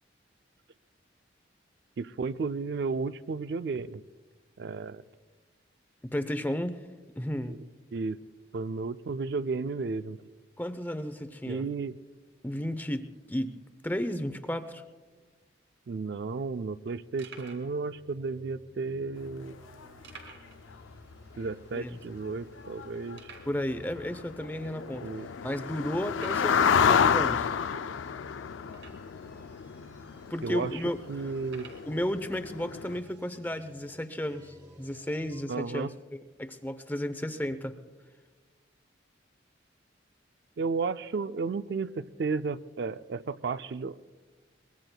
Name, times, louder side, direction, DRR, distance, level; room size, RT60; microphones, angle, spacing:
voice 1, 2.0-4.0 4.6-5.1 7.5-7.6 7.9-8.2 8.5-10.2 11.5-12.0 15.9-19.6 21.4-23.3 25.0-25.3 30.4-30.8 31.1-31.7 35.5-35.9 40.6-44.0, right 4 dB, 60° right, 13 dB, 0.4 m, -33 dB
voice 2, 6.0-6.8 7.2-7.6 10.6-11.6 12.4-13.6 13.8-14.8 21.7-22.0 23.5-25.1 25.4-27.5 30.3-31.3 31.9-35.9 36.4-37.8, equal, 10° left, 11 dB, 0.6 m, -33 dB
sound 1, 15.7-15.8 16.0-16.2 16.7-16.8 17.2-17.7 18.5-18.6 20.0-20.6 20.9-21.0 21.4-21.5 22.1-22.2 23.1-23.6 24.4-24.5 25.1-25.2 26.1-26.6 28.7-29.2 30.0-30.1 31.4-31.9, right 4 dB, 80° right, 2.5 m, -49 dB
sound 2, 17.6-35.5, equal, 45° right, 2.1 m, -56 dB
sound 3, 19.3-19.4 19.8-19.9 20.1-20.3 20.7-21.0 21.4-21.5 21.8-21.9 22.1-22.3 22.6-33.0, left 7 dB, 85° left, 0.4 m, -30 dB
23.5 x 21.0 x 2.3 m, 1.4 s
head